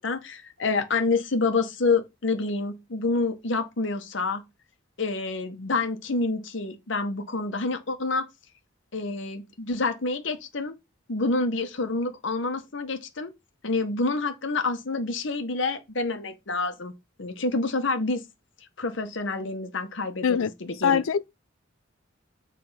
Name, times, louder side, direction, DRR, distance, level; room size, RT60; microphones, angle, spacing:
voice 1, 0.0-4.4 5.0-8.3 8.9-10.7 11.1-13.3 13.6-16.9 17.2-18.2 18.8-21.0, left 3 dB, 65° left, 1.0 m, -28 dB
voice 2, 20.8-21.3, left 7 dB, 85° left, 0.4 m, -23 dB
6.8 x 3.4 x 5.5 m
head